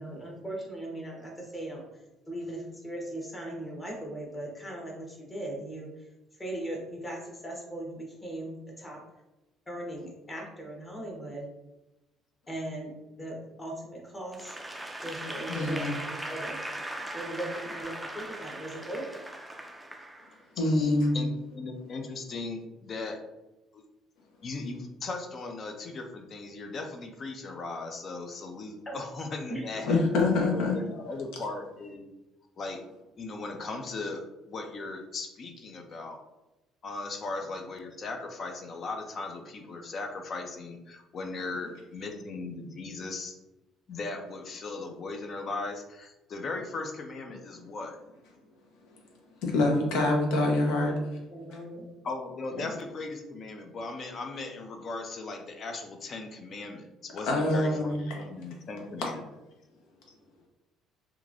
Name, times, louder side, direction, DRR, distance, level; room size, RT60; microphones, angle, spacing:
voice 1, 0.0-1.8 2.3-6.1 6.4-9.2 9.7-11.5 12.5-12.9 13.2-14.6 15.0-16.6 17.1-19.2 28.8-28.9 29.5-29.6 51.3-51.9, right 1 dB, 20° left, -1 dB, 1.0 m, -39 dB
Applause / Crowd, 14.3-20.6, right 1 dB, 10° right, 0.3 m, -39 dB
voice 2, 15.5-15.9 20.6-21.2 29.9-30.8 49.4-50.9 57.2-58.0 59.0-59.1, left 2 dB, 80° left, 0 dB, 0.7 m, -25 dB
voice 3, 20.6-23.2 23.7-23.8 24.4-30.0 30.5-32.1 32.6-32.8 33.2-36.2 36.8-43.3 43.9-48.0 52.0-59.2, left 3 dB, 45° left, 4 dB, 0.5 m, -38 dB
2.9 x 2.4 x 2.5 m, 0.99 s
supercardioid pair, 85°, 0 cm